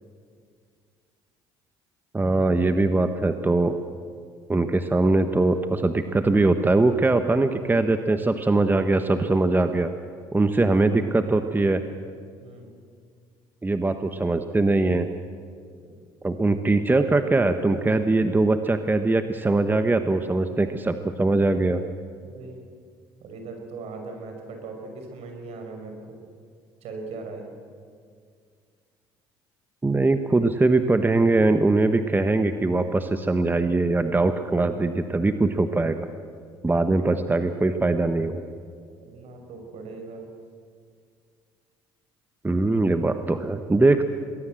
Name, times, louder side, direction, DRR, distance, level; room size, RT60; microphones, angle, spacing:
voice 1, 2.1-3.8 4.5-9.9 10.3-11.8 13.6-15.1 16.2-21.8 29.8-36.1 36.6-38.4 42.4-44.1, right 2 dB, 15° right, 8 dB, 1.3 m, -22 dB
voice 2, 12.4-12.7 22.2-22.7 23.2-26.2 26.8-27.4 39.0-40.3, right 3 dB, 65° right, 3 dB, 5.8 m, -39 dB
23.0 x 20.0 x 7.7 m, 2.1 s
hypercardioid pair, 65°, 11 cm